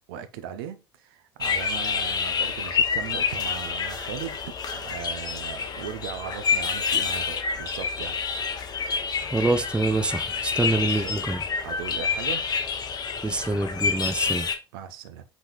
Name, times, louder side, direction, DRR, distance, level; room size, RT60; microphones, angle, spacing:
voice 1, 0.1-4.4 4.7-8.2 10.7-11.2 11.6-12.4 14.3-14.4 14.7-15.2, right 9 dB, 65° right, 0.5 m, -38 dB
sound 1, 1.4-14.6, left 6 dB, 30° left, 0.8 m, -28 dB
voice 2, 9.2-11.4 13.2-14.5, right 2 dB, 10° right, 0.4 m, -26 dB
4.1 x 3.7 x 3.0 m
figure-of-eight pair, 65°, 13 cm